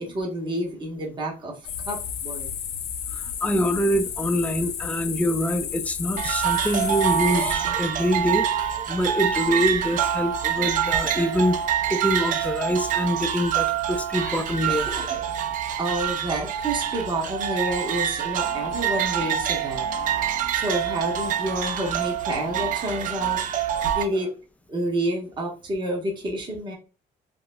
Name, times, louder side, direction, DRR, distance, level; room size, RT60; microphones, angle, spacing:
voice 1, 0.0-1.5 1.9-2.5 14.7-15.2 15.8-19.9 20.5-23.5 23.8-24.4 24.7-26.7, right 1 dB, 25° right, 1.1 m, -29 dB
sound 1, 1.6-7.5, left 8 dB, 75° left, 0.6 m, -32 dB
voice 2, 3.1-14.9 23.7-23.8, equal, 10° left, 0.4 m, -25 dB
sound 2, 6.2-24.0, right 9 dB, 50° right, 0.5 m, -26 dB
sound 3, 18.3-23.6, right 3 dB, 80° right, 1.0 m, -46 dB
4.8 x 2.0 x 2.2 m
cardioid pair, 110°, 17 cm